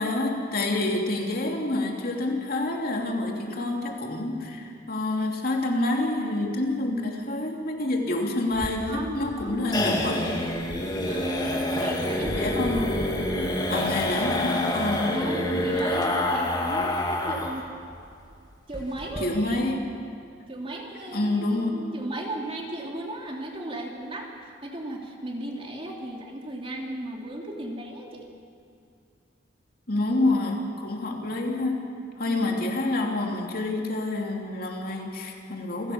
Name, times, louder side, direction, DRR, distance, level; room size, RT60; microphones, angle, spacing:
voice 1, 0.0-10.4 12.3-13.0 13.7-15.1 19.2-19.8 21.1-21.8 29.9-31.9 32.2-35.9, left 2 dB, 55° left, 1 dB, 2.9 m, -27 dB
sound 1, 8.5-17.6 17.9-18.0 18.3-18.4 18.7-19.2, left 1 dB, 25° left, 2.8 m, -27 dB
voice 2, 8.9-9.7 11.0-12.5 13.3-13.9 15.1-17.7 18.7-19.6 20.5-28.2 32.3-32.6, right 1 dB, 30° right, 0 dB, 2.9 m, -35 dB
28.0 x 16.5 x 7.1 m, 2.4 s
head